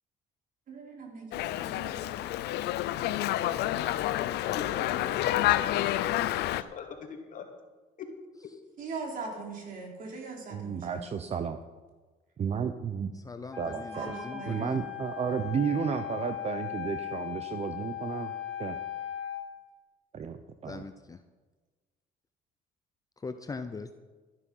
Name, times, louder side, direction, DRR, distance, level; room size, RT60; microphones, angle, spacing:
voice 1, 0.7-2.2 8.8-11.1 13.9-14.8, right 4 dB, 55° right, 0 dB, 4.0 m, -41 dB
Dog, 1.3-6.6, left 14 dB, 80° left, 0.6 m, -29 dB
voice 2, 4.5-6.4 6.7-7.5 8.0-8.1 8.4-8.5, left 6 dB, 50° left, 3 dB, 2.5 m, -42 dB
voice 3, 10.5-11.6 12.4-13.1 13.6-14.1 14.5-18.3 18.6-18.8 20.1-20.8, right 7 dB, 40° right, 9 dB, 0.7 m, -32 dB
voice 4, 13.1-14.8 20.6-21.2 23.2-23.9, left 4 dB, 20° left, 9 dB, 0.7 m, -40 dB
Wind instrument woodwind instrument, 13.5-19.5, left 11 dB, 5° left, 2.8 m, -38 dB
13.0 x 11.0 x 5.6 m, 1.3 s
cardioid pair, 110°, 17 cm